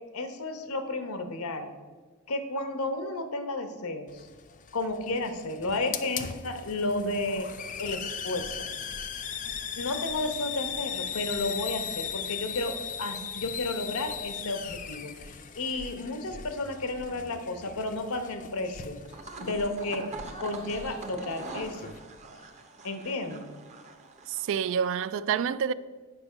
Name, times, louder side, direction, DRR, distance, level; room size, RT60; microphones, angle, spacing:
voice 1, 0.1-1.7 2.3-4.3 4.7-7.5 7.8-8.7 9.8-19.0 19.4-20.1 20.4-21.9 22.8-23.5, left 2 dB, 90° left, 1.0 m, -32 dB
Hiss, 4.1-22.0, left 8 dB, 40° left, 0.4 m, -39 dB
sound 1, 19.0-24.8, right 3 dB, 35° right, 0.8 m, -43 dB
voice 2, 24.3-25.7, right 7 dB, 65° right, 0.3 m, -28 dB
9.0 x 5.2 x 5.0 m
head